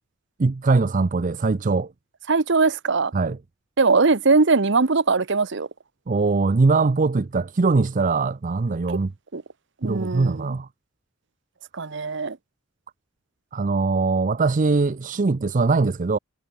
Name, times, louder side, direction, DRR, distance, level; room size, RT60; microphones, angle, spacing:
voice 1, 0.4-1.9 3.1-3.4 6.1-9.1 9.8-10.7 13.5-16.2, right 3 dB, 40° right, 0.5 m, -21 dB
voice 2, 2.3-3.1 3.8-5.7 9.3-9.4 9.8-10.4 11.7-12.4, right 4 dB, 60° right, 0.9 m, -20 dB
head